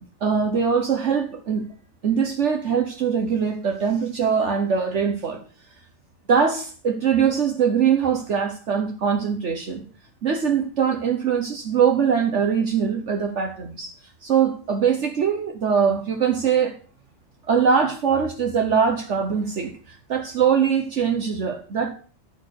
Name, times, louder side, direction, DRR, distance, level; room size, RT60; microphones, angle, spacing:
voice 1, 0.2-1.6 2.0-5.4 6.3-9.9 10.2-13.9 14.2-16.7 17.5-21.9, right 7 dB, 55° right, 4 dB, 1.3 m, -22 dB
12.0 x 4.5 x 6.4 m, 0.42 s
omnidirectional pair, 1.5 m